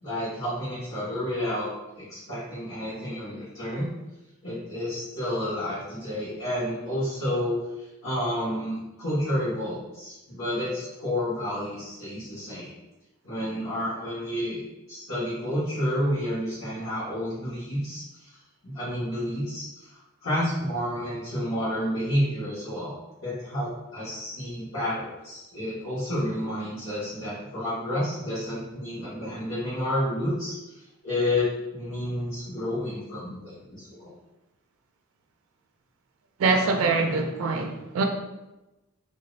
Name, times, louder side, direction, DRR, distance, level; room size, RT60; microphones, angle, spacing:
voice 1, 0.0-1.7 1.9-3.9 4.4-12.7 13.2-14.6 14.9-18.0 18.6-22.9 23.2-30.8 31.0-34.1, left 1 dB, 90° left, -14 dB, 1.3 m, -30 dB
voice 2, 36.4-38.0, right 3 dB, 90° right, 3 dB, 0.3 m, -24 dB
3.1 x 2.7 x 2.4 m, 1.0 s
head